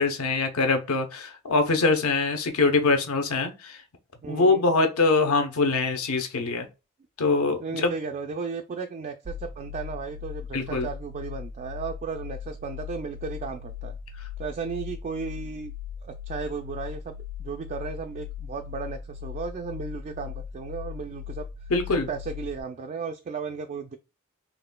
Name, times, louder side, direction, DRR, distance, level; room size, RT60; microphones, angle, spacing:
voice 1, 0.0-3.8 4.3-6.7 7.2-7.9 10.5-10.9 21.7-22.1, left 3 dB, 75° left, 0.7 m, -23 dB
voice 2, 4.2-4.7 7.6-14.0 14.4-15.7 16.0-21.5 21.9-24.0, right 5 dB, 35° right, 0.3 m, -35 dB
sound 1, 9.3-22.6, left 8 dB, 80° right, 0.6 m, -39 dB
4.0 x 3.1 x 2.2 m
head